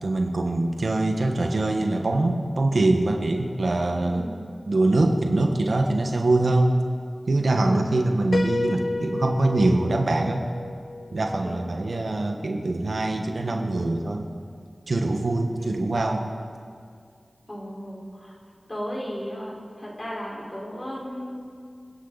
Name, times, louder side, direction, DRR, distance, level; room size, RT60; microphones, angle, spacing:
voice 1, 0.0-4.2 4.7-6.7 7.3-10.4 11.1-14.4 14.9-16.2, right 2 dB, 75° right, 3 dB, 1.4 m, -23 dB
voice 2, 4.0-4.3 7.6-7.9 11.4-11.6 15.6-15.7 17.5-18.3 18.7-21.4, equal, 35° left, -4 dB, 4.7 m, -35 dB
Piano, 8.3-12.1, left 3 dB, 75° left, 0.4 m, -32 dB
27.5 x 10.0 x 4.2 m, 2.2 s
wide cardioid pair, 55°, 0 cm